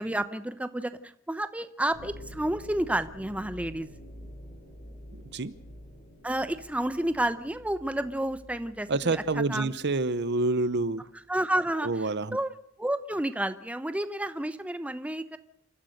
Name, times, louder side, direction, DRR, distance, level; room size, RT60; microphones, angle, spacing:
voice 1, 0.0-3.9 6.2-9.2 9.5-9.7 11.3-11.9 12.3-12.5 12.8-15.4, right 1 dB, 5° right, 11 dB, 0.8 m, -30 dB
sound 1, 1.9-11.4, equal, 60° left, 7.8 m, -48 dB
voice 2, 8.9-11.1 11.8-12.4, right 3 dB, 55° right, 15 dB, 0.9 m, -27 dB
29.0 x 14.0 x 6.6 m, 0.74 s
head